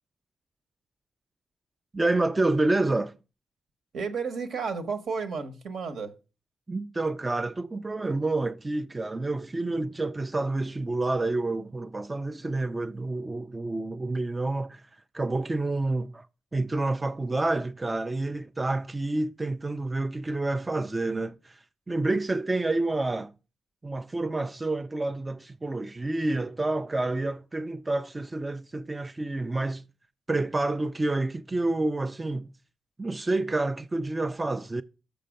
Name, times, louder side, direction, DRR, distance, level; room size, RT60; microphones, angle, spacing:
voice 1, 1.9-3.1 6.7-14.8 15.1-16.3 16.5-21.6 21.9-23.3 23.8-29.8 30.3-32.5 33.0-34.8, right 2 dB, 20° right, 0.3 m, -28 dB
voice 2, 3.9-6.1, right 5 dB, 75° right, 1.1 m, -32 dB
6.7 x 5.4 x 5.1 m
cardioid pair, 90°, 0 cm